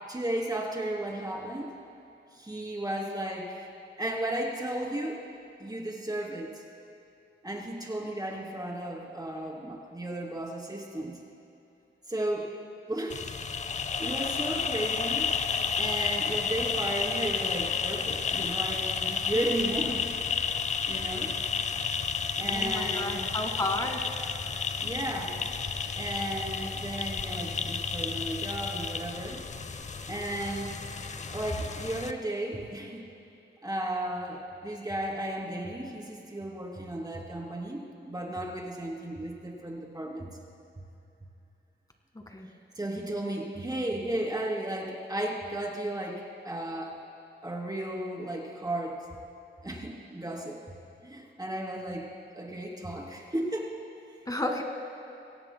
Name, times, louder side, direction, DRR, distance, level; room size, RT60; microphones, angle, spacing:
voice 1, 0.1-1.7 2.3-3.6 4.0-5.2 5.6-6.6 7.4-11.2 12.1-12.5 12.9-13.3 14.0-15.3 15.8-20.1 20.9-21.3 22.4-23.2 24.8-25.4 25.9-29.4 30.1-30.7 31.3-33.0 33.6-40.3 42.7-47.0 47.4-49.1 49.6-50.6 51.0-52.1 52.3-53.7, right 1 dB, 20° right, -2 dB, 2.9 m, -34 dB
sound 1, 13.1-32.1, left 6 dB, 35° left, 0.6 m, -32 dB
voice 2, 22.4-24.2 42.3-42.5 54.3-54.6, left 1 dB, 20° left, 3 dB, 1.9 m, -32 dB
23.0 x 17.0 x 2.2 m, 2.7 s
cardioid pair, 80°, 20 cm